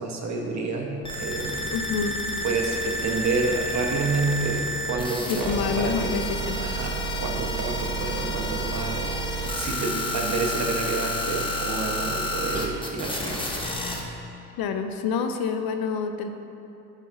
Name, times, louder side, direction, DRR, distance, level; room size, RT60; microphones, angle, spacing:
voice 1, 0.0-1.8 2.4-6.1 6.6-13.4, right 3 dB, 40° right, 1 dB, 1.0 m, -29 dB
sound 1, 1.0-14.0, equal, 10° left, 0.9 m, -30 dB
voice 2, 1.7-2.2 5.3-6.6 14.6-16.3, left 6 dB, 60° left, 7 dB, 0.5 m, -27 dB
9.5 x 4.5 x 2.6 m, 2.7 s
supercardioid pair, 75°, 42 cm